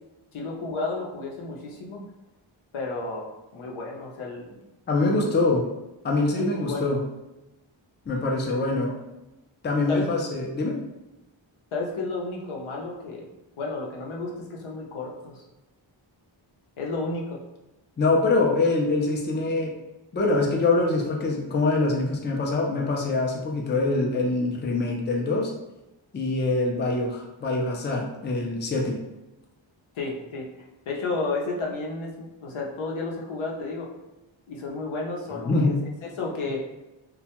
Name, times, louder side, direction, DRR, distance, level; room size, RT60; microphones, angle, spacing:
voice 1, 0.3-2.0 2.7-4.6 5.1-5.3 6.3-6.8 9.9-10.1 11.7-13.3 13.6-15.4 16.8-17.4 30.0-33.9 34.5-36.6, left 3 dB, 80° left, -1 dB, 0.7 m, -32 dB
voice 2, 4.9-5.7 6.0-7.0 8.1-8.9 9.6-10.8 18.0-19.7 20.1-25.5 26.1-29.0 35.3-35.7, left 2 dB, 25° left, -1 dB, 0.4 m, -24 dB
2.2 x 2.1 x 2.8 m, 0.99 s
wide cardioid pair, 90°, 48 cm